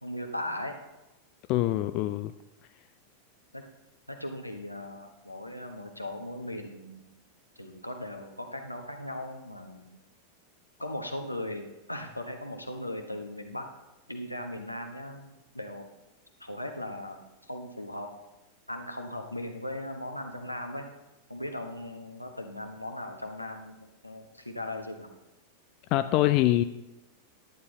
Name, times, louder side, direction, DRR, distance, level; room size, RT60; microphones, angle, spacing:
voice 1, 0.0-0.8 3.5-3.6 4.1-7.0 7.6-10.0 10.8-13.7 14.1-15.9 16.4-17.2 17.5-18.1 18.7-20.9 21.3-25.1, left 1 dB, 85° left, 4 dB, 1.2 m, -38 dB
voice 2, 1.5-2.3 25.9-26.6, left 15 dB, 40° left, 11 dB, 0.4 m, -24 dB
11.0 x 9.7 x 3.9 m, 0.97 s
figure-of-eight pair, 90°, 0 cm